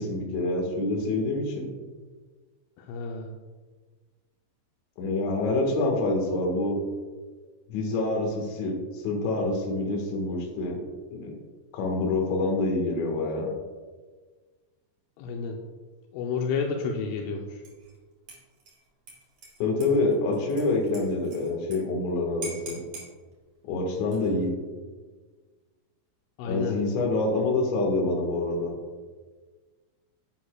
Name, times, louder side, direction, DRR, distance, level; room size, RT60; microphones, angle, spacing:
voice 1, 0.0-1.7 5.0-6.8 7.7-10.8 11.1-11.3 11.7-13.5 19.6-22.8 23.6-24.5 26.5-28.7, left 2 dB, 70° left, 1 dB, 3.6 m, -26 dB
voice 2, 2.8-3.3 15.2-15.6 16.1-17.6 26.4-26.8, left 5 dB, 85° left, 1 dB, 3.1 m, -30 dB
Dishes pots and pans / Liquid, 17.6-18.0 18.3-21.8 22.0-22.1 22.4-23.1 24.0-24.5, right 3 dB, 40° right, 2.9 m, -44 dB
11.0 x 10.0 x 2.3 m, 1.4 s
omnidirectional pair, 5.7 m